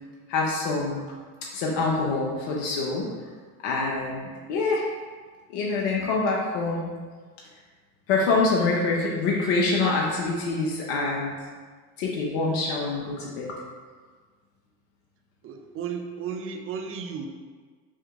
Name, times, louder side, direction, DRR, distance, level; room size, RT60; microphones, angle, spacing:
voice 1, 0.3-1.0 1.5-3.1 3.6-4.8 5.5-6.9 8.1-11.3 12.0-13.5, left 3 dB, 60° left, -3 dB, 0.8 m, -25 dB
voice 2, 15.4-17.3, right 6 dB, 30° right, 3 dB, 0.4 m, -34 dB
3.5 x 2.8 x 3.4 m, 1.5 s
hypercardioid pair, 75°, 47 cm